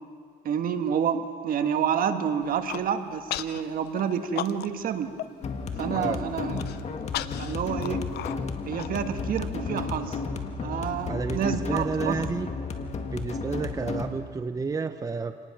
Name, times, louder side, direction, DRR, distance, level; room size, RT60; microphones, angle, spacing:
voice 1, 0.4-5.1 5.8-6.7 7.4-8.0 8.7-10.2 10.6-12.2, right 8 dB, 60° right, 8 dB, 1.4 m, -28 dB
Human voice, 2.4-2.9 3.3-3.6 4.0-4.9 5.2-5.3 5.7-6.0 6.5-9.4, left 13 dB, 75° left, 0.7 m, -35 dB
sound 1, 5.4-14.1, left 4 dB, 40° left, 1.8 m, -33 dB
voice 2, 11.1-12.5 13.1-15.4, right 4 dB, 20° right, 9 dB, 0.7 m, -31 dB
27.0 x 19.5 x 6.0 m, 2.2 s
cardioid pair, 110°, 17 cm